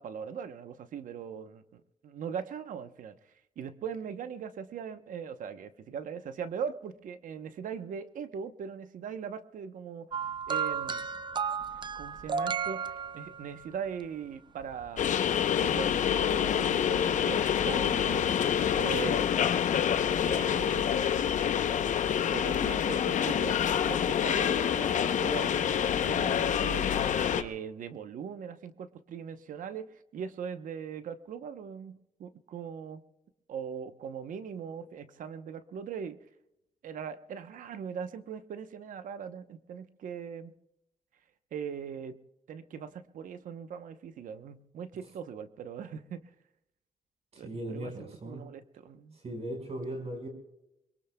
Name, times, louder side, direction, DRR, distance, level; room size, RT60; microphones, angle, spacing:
voice 1, 0.0-3.2 3.6-10.1 10.5-11.1 11.9-15.0 15.6-18.3 18.7-19.3 20.2-21.1 22.3-23.6 23.8-27.0 27.3-33.0 33.5-36.2 36.8-40.5 41.5-42.2 42.5-46.2 47.4-49.2, right 7 dB, 80° right, 10 dB, 0.9 m, -40 dB
sound 1, 10.1-13.7 14.7-14.9, right 6 dB, 35° right, 0.5 m, -33 dB
sound 2, 15.0-27.4, left 9 dB, 70° left, 0.8 m, -27 dB
voice 2, 47.3-48.4 49.2-50.3, right 1 dB, 50° right, 3 dB, 5.1 m, -38 dB
24.5 x 22.0 x 2.3 m, 0.87 s
cardioid pair, 105°, 13 cm